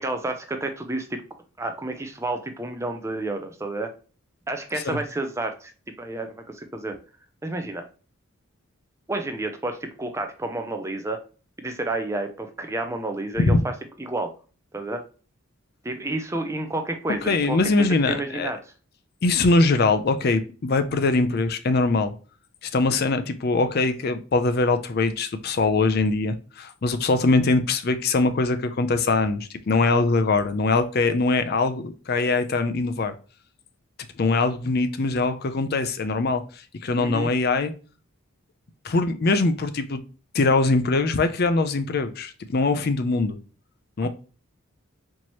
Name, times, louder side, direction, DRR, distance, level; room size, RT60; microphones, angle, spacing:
voice 1, 0.0-1.2 1.6-3.9 4.5-5.7 6.0-7.0 7.4-7.8 9.1-11.2 11.6-13.7 14.0-14.3 14.7-15.0 15.8-18.6 37.0-37.3 44.0-44.1, right 2 dB, 15° right, 6 dB, 0.4 m, -30 dB
voice 2, 17.3-18.5 19.2-22.1 22.7-33.1 34.2-36.4 36.8-37.7 38.8-40.0 40.3-43.4 44.0-44.1, left 3 dB, 45° left, 9 dB, 0.4 m, -22 dB
4.5 x 2.9 x 2.9 m, 0.37 s
head